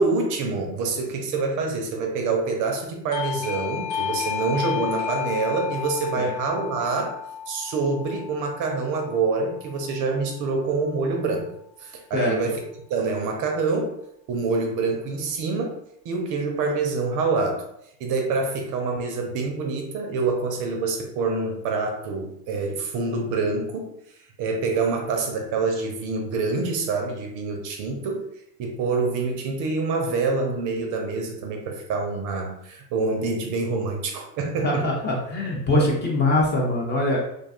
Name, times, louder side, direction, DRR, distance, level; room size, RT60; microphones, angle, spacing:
voice 1, 0.0-7.1 7.5-11.5 11.8-12.6 12.9-13.9 14.3-15.8 16.0-17.6 18.0-23.9 24.4-28.2 28.6-34.8, right 4 dB, 40° right, 2 dB, 0.5 m, -26 dB
Doorbell, 3.1-9.6, left 8 dB, 85° left, 0.6 m, -32 dB
voice 2, 34.6-37.2, left 1 dB, 25° left, -3 dB, 0.4 m, -23 dB
2.4 x 2.2 x 2.4 m, 0.77 s
hypercardioid pair, 85°, 48 cm